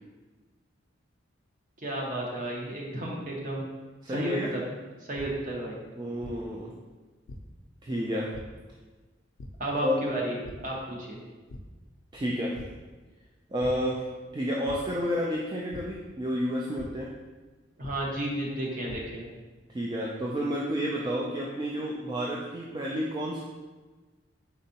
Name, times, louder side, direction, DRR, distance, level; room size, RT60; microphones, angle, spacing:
voice 1, 1.8-3.7 4.1-4.6 5.1-5.8 9.6-10.4 10.6-11.2 17.8-19.3, right 1 dB, 40° right, -2 dB, 0.9 m, -32 dB
voice 2, 4.0-4.5 6.0-6.8 7.8-8.3 9.8-10.0 12.1-12.6 13.5-14.0 14.3-17.1 19.7-23.4, equal, 20° right, -3 dB, 0.3 m, -30 dB
sound 1, 5.1-5.2 6.2-6.3 7.3-7.4 8.3-8.4 9.4-9.5 10.4-10.5 11.0-11.2 11.5-11.6 12.5-12.6 13.6-13.7 14.7-14.8 15.7-15.8 16.8-16.9 17.8-17.9 18.6-19.0, left 2 dB, 90° left, 0.4 m, -42 dB
4.4 x 4.0 x 2.8 m, 1.3 s
head